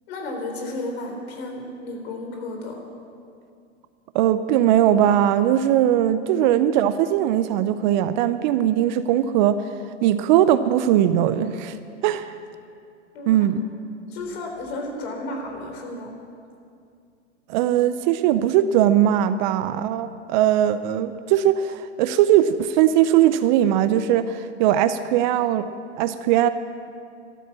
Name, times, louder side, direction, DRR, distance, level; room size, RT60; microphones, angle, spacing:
voice 1, 0.1-2.8 6.4-6.5 13.1-13.4 14.1-16.1, left 2 dB, 55° left, 2 dB, 4.0 m, -33 dB
voice 2, 4.1-9.7 10.0-11.8 12.0-12.3 13.3-13.6 17.5-25.7 26.0-26.5, right 11 dB, 40° right, 12 dB, 0.6 m, -20 dB
14.5 x 13.0 x 7.6 m, 2.4 s
hypercardioid pair, 120°, 36 cm